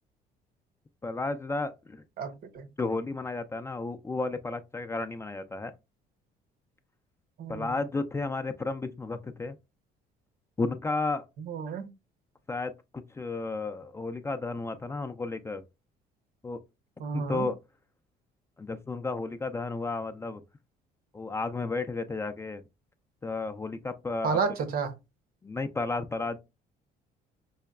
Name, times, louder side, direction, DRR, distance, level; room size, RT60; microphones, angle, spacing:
voice 1, 1.0-2.0 2.8-5.7 7.5-9.6 10.6-11.2 12.5-12.7 13.1-15.6 16.4-16.6 17.1-17.5 18.6-20.4 21.1-22.6 23.2-24.4 25.4-26.4, left 3 dB, 15° left, 0.3 m, -32 dB
voice 2, 2.2-2.7 7.4-7.7 11.4-11.9 17.0-17.5 24.2-25.0, right 5 dB, 60° right, 0.8 m, -31 dB
5.5 x 2.1 x 2.3 m
cardioid pair, 110°, 17 cm